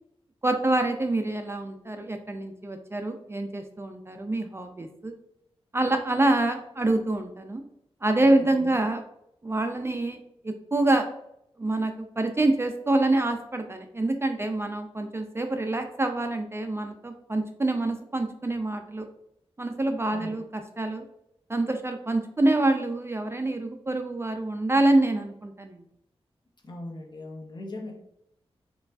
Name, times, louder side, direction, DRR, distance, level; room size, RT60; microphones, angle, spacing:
voice 1, 0.4-5.1 5.7-7.6 8.0-9.0 9.4-11.1 11.6-19.1 19.6-21.0 21.5-25.8, right 2 dB, 25° right, 5 dB, 0.3 m, -26 dB
voice 2, 8.3-8.8 20.1-20.5 26.6-28.0, left 1 dB, 45° left, 0 dB, 0.9 m, -40 dB
4.5 x 2.3 x 2.4 m, 0.77 s
wide cardioid pair, 75°, 11 cm